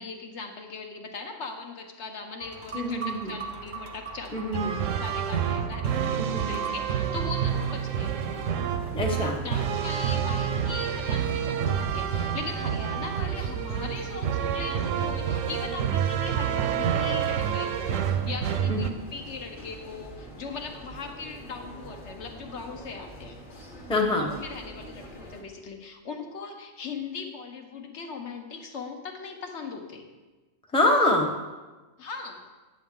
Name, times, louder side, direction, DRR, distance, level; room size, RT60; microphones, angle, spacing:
voice 1, 0.0-8.2 9.4-23.4 24.2-30.0 32.0-32.4, left 4 dB, 65° left, 4 dB, 1.1 m, -39 dB
sound 1, 2.4-7.7, right 4 dB, 50° right, 0.7 m, -41 dB
voice 2, 2.7-3.4 4.3-4.7 6.2-6.7 8.9-9.4 18.7-18.8 23.9-24.3 30.7-31.3, left 1 dB, 5° left, 0 dB, 0.7 m, -25 dB
sound 2, 4.5-18.9, right 8 dB, 85° right, 1.0 m, -28 dB
sound 3, 7.4-25.4, equal, 45° left, 1.2 m, -45 dB
9.3 x 7.2 x 3.6 m, 1.2 s
omnidirectional pair, 1.3 m